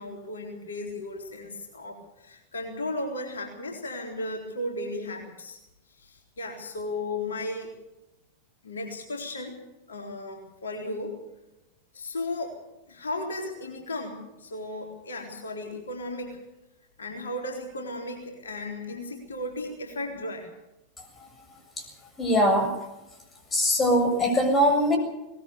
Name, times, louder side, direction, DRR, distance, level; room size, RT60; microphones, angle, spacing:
voice 1, 0.0-5.6 6.0-7.7 8.6-9.6 9.9-11.2 11.9-12.6 12.9-16.4 17.0-20.5, left 2 dB, 70° left, 2 dB, 3.9 m, -35 dB
voice 2, 21.0-21.9 22.2-22.7 23.5-25.0, equal, 20° left, 3 dB, 7.1 m, -23 dB
21.5 x 19.5 x 6.9 m, 0.95 s
figure-of-eight pair, 90°, 0 cm